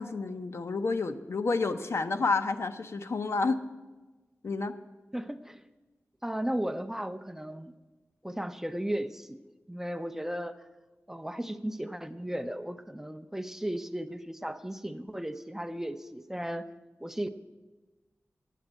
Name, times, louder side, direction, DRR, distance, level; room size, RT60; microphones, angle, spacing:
voice 1, 0.0-3.6 4.4-4.8, left 3 dB, 60° left, 9 dB, 0.6 m, -30 dB
voice 2, 5.1-5.6 6.2-7.7 8.2-9.4 9.7-10.6 11.1-16.7 17.0-17.3, right 1 dB, 10° right, 10 dB, 0.5 m, -35 dB
9.2 x 7.2 x 8.8 m, 1.2 s
wide cardioid pair, 80°, 5 cm